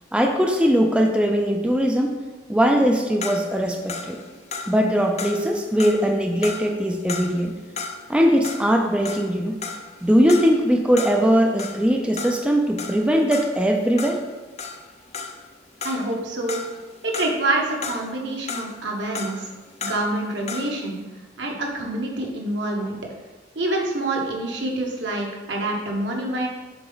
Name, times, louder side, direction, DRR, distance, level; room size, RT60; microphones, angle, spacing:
voice 1, 0.1-2.2 2.5-4.2 4.7-7.5 8.1-9.6 10.0-14.2, equal, 5° right, 2 dB, 0.4 m, -20 dB
sound 1, 3.2-8.2 8.4-15.5 15.8-17.5 17.8-20.8, left 4 dB, 40° left, 0.6 m, -35 dB
voice 2, 15.8-16.6 17.0-19.5 19.8-21.0 21.4-23.0 23.5-26.5, right 2 dB, 80° right, 0 dB, 1.2 m, -26 dB
6.8 x 4.2 x 3.9 m, 1.2 s
head